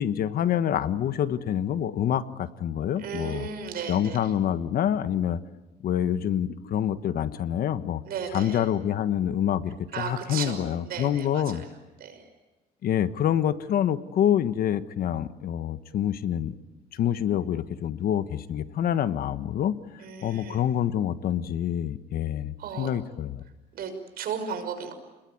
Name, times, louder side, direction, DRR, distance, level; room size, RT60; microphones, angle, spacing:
voice 1, 0.0-3.5 3.9-5.4 5.8-8.0 8.3-11.6 12.8-16.6 16.9-19.8 20.2-23.4, left 10 dB, 60° left, 12 dB, 1.5 m, -26 dB
voice 2, 3.0-4.3 8.0-8.7 9.9-11.6 12.0-12.3 20.0-20.6 22.6-23.0 23.7-24.9, right 6 dB, 65° right, 7 dB, 5.9 m, -35 dB
29.5 x 21.0 x 9.5 m, 1.1 s
cardioid pair, 110°, 17 cm